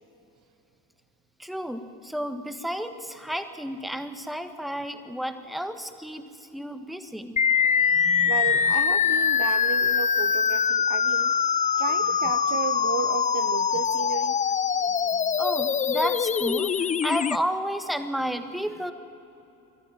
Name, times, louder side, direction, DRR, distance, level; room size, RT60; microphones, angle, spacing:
voice 1, 1.4-7.4 7.9-8.4 14.8-18.9, equal, ahead, 8 dB, 1.5 m, -32 dB
sound 1, 7.4-17.4, left 7 dB, 15° left, 0.4 m, -23 dB
voice 2, 8.2-11.3 11.8-14.4, right 9 dB, 40° right, 10 dB, 0.8 m, -33 dB
22.0 x 14.0 x 9.4 m, 2.8 s
hypercardioid pair, 55°, 48 cm